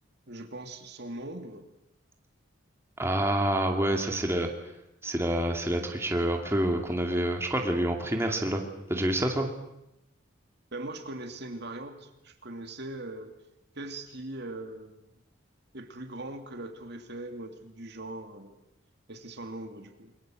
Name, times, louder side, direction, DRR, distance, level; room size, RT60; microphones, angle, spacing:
voice 1, 0.3-1.7 10.7-13.3 13.7-15.1 15.7-18.6 19.1-20.1, right 2 dB, 55° right, 6 dB, 2.7 m, -40 dB
voice 2, 3.0-4.5 5.0-8.6 8.9-9.5, right 1 dB, 10° right, 2 dB, 2.5 m, -27 dB
29.0 x 23.0 x 7.8 m, 0.87 s
head